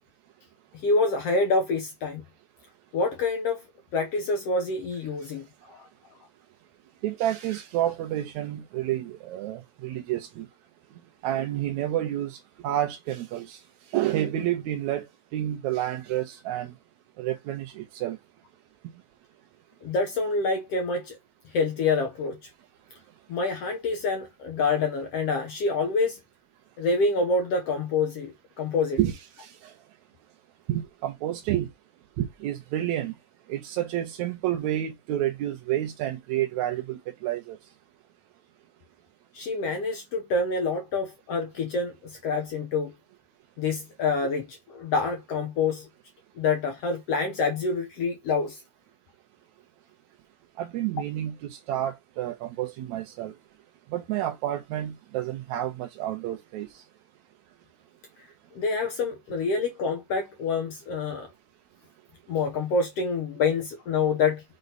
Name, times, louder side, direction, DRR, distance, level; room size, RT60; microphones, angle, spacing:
voice 1, 0.8-2.2 2.9-3.6 3.9-5.9 19.8-21.2 21.5-22.4 23.3-26.2 26.8-29.0 39.3-42.9 43.6-45.9 46.4-48.6 58.5-61.3 62.3-64.4, left 4 dB, 70° left, 1.5 m, -27 dB
voice 2, 7.0-10.5 11.2-13.6 13.9-15.1 15.3-16.7 17.2-18.2 29.0-29.7 30.7-31.7 32.2-33.1 33.5-37.6 50.6-53.3 53.9-56.8, right 12 dB, 75° right, 1.8 m, -29 dB
6.4 x 3.9 x 4.0 m
omnidirectional pair, 4.1 m